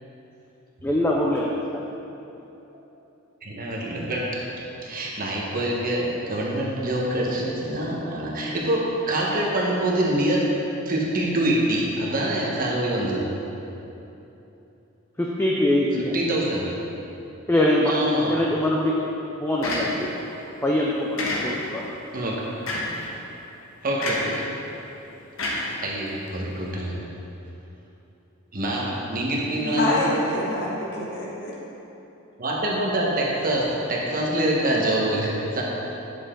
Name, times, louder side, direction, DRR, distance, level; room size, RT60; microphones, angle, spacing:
voice 1, 0.8-1.8 15.2-16.1 17.5-17.9 18.3-18.9 19.4-20.1 20.6-21.9, left 1 dB, 10° left, -3 dB, 0.5 m, -23 dB
voice 2, 3.4-10.5 10.8-13.3 16.0-16.7 17.8-18.4 22.1-22.4 23.8-24.5 25.7-27.0 28.5-30.1 32.4-35.6, right 1 dB, 40° right, -4 dB, 1.3 m, -25 dB
sound 1, 19.6-20.3 21.2-21.8 22.7-23.1 24.0-24.4 25.4-26.3, left 1 dB, 65° left, 1.3 m, -28 dB
voice 3, 29.6-31.5, left 1 dB, 50° left, -5 dB, 1.7 m, -26 dB
9.9 x 6.7 x 3.8 m, 3.0 s
head